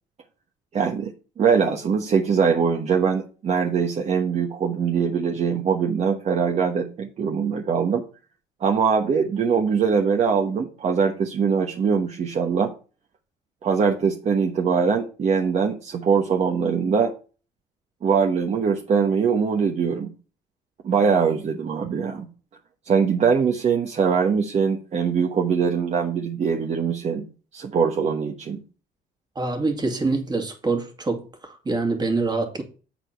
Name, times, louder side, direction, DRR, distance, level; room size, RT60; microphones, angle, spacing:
voice 1, 0.7-8.0 8.6-12.7 13.6-17.1 18.0-20.1 20.8-22.3 22.9-27.3 27.5-28.6, right 6 dB, 40° right, 1.1 m, -22 dB
voice 2, 29.4-32.6, right 3 dB, 25° right, 2.1 m, -25 dB
8.3 x 4.4 x 5.8 m
cardioid pair, 110°, 17 cm